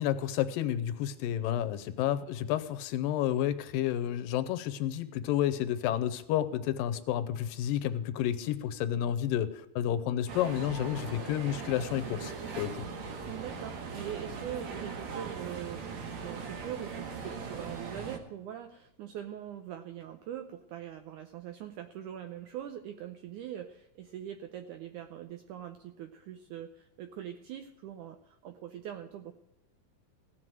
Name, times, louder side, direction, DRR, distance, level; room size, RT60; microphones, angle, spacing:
voice 1, 0.0-12.8, left 11 dB, 80° left, 12 dB, 2.3 m, -30 dB
sound 1, 10.3-18.2, right 5 dB, 55° right, 2.5 m, -40 dB
voice 2, 13.3-29.3, right 10 dB, 80° right, 7 dB, 1.8 m, -42 dB
16.5 x 6.2 x 7.9 m, 0.88 s
omnidirectional pair, 4.2 m